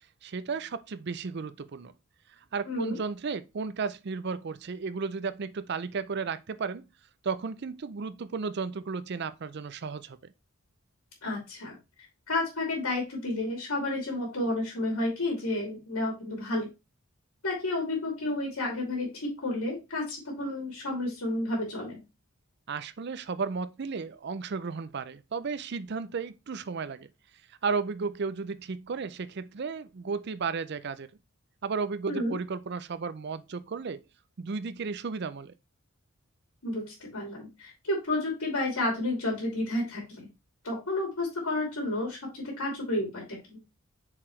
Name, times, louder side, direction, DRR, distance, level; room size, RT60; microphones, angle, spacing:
voice 1, 0.2-1.9 2.5-6.9 7.2-10.2 22.7-27.1 27.6-31.1 31.6-34.0 34.4-35.5, right 5 dB, 50° right, 0.5 m, -34 dB
voice 2, 2.6-3.0 11.2-11.8 12.3-16.7 17.4-22.0 32.1-32.4 36.6-40.3 40.6-43.6, left 2 dB, 85° left, 2.9 m, -31 dB
7.2 x 4.8 x 3.2 m
head